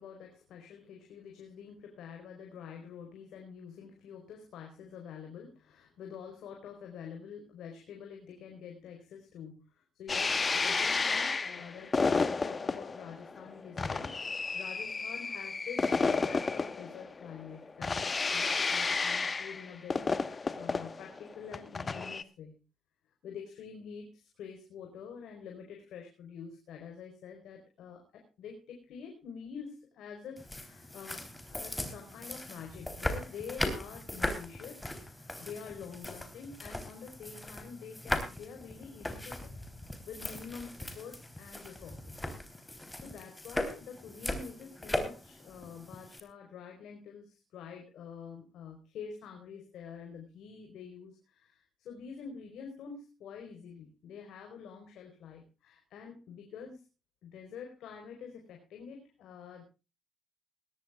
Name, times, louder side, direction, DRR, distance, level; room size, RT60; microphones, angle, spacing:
voice 1, 0.0-14.1 14.5-22.5 23.2-34.8 35.1-39.5 40.0-42.1 42.6-42.7 43.0-56.8 57.2-59.6, left 6 dB, 80° left, 3 dB, 4.5 m, -47 dB
sound 1, 10.1-22.2, left 4 dB, 30° left, 1.3 m, -31 dB
sound 2, 30.4-46.2, left 1 dB, 10° left, 3.7 m, -39 dB
19.5 x 17.5 x 2.4 m, 0.32 s
cardioid pair, 90°, 0 cm